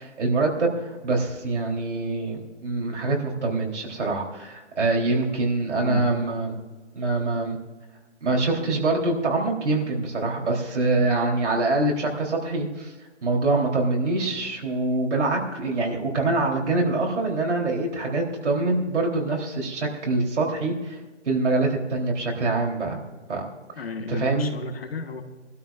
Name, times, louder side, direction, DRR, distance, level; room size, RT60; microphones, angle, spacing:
voice 1, 0.0-6.6 6.9-7.6 8.2-12.9 13.2-21.0 21.3-23.0 23.3-23.5 24.1-24.5, right 2 dB, 75° right, 0 dB, 3.6 m, -25 dB
voice 2, 5.8-6.2 23.8-25.2, left 4 dB, 55° left, 6 dB, 1.4 m, -33 dB
22.5 x 12.5 x 2.5 m, 1.3 s
hypercardioid pair, 175°, 36 cm